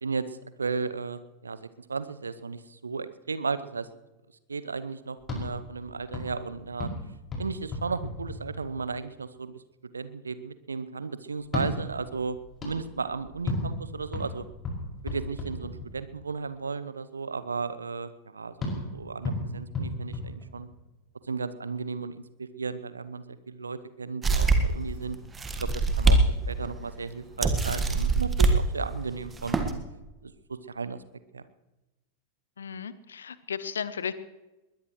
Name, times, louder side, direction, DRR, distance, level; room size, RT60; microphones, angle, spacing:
voice 1, 0.0-3.9 4.5-6.9 7.4-9.6 9.9-12.4 12.6-14.5 15.0-20.7 21.3-25.2 25.6-26.2 26.5-29.6 30.2-31.0 31.3-31.4, right 4 dB, 75° right, 15 dB, 0.8 m, -35 dB
sound 1, 5.2-9.0 11.4-16.3 18.6-21.0, left 2 dB, 25° left, 6.0 m, -35 dB
sound 2, 24.2-24.8 25.3-26.2 26.6-26.7 27.4-28.6 29.3-29.7, right 3 dB, 15° right, 1.6 m, -23 dB
voice 2, 32.6-34.1, left 7 dB, 70° left, 16 dB, 0.8 m, -34 dB
21.0 x 20.5 x 3.2 m, 1.1 s
figure-of-eight pair, 90°, 0 cm